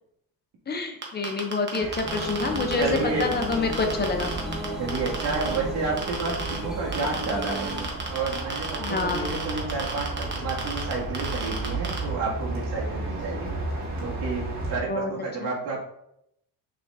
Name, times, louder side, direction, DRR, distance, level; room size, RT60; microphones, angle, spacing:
voice 1, 0.7-1.9 2.1-2.9 3.2-4.3 8.8-9.4 14.9-15.1 15.4-15.5, left 4 dB, 25° left, 5 dB, 0.6 m, -27 dB
sound 1, 1.0-5.6 6.0-6.6 6.9-12.0, right 4 dB, 30° right, 1.1 m, -33 dB
sound 2, 1.8-14.8, right 2 dB, 45° right, 1.7 m, -34 dB
sound 3, 2.0-7.9, right 1 dB, ahead, 0.8 m, -34 dB
voice 2, 2.8-3.3 4.8-7.7 8.1-13.5 14.0-15.8, right 4 dB, 90° right, -3 dB, 2.2 m, -30 dB
6.5 x 6.3 x 2.6 m, 0.77 s
cardioid pair, 175°, 39 cm